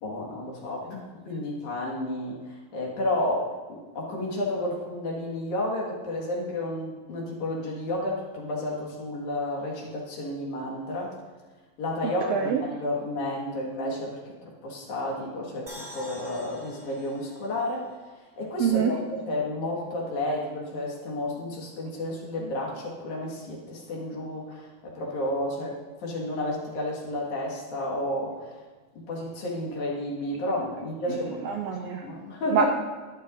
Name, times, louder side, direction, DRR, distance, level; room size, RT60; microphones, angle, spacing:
voice 1, 0.0-11.1 11.8-17.9 18.4-28.6 29.0-31.5 32.0-32.7, left 1 dB, 70° left, -3 dB, 3.2 m, -31 dB
voice 2, 12.0-12.6 18.6-19.0 31.1-32.1 32.5-32.7, right 7 dB, 85° right, 3 dB, 1.3 m, -26 dB
sound 1, 15.7-18.9 19.2-19.3, right 1 dB, 10° right, 1.9 m, -46 dB
12.0 x 11.0 x 2.6 m, 1.4 s
omnidirectional pair, 3.6 m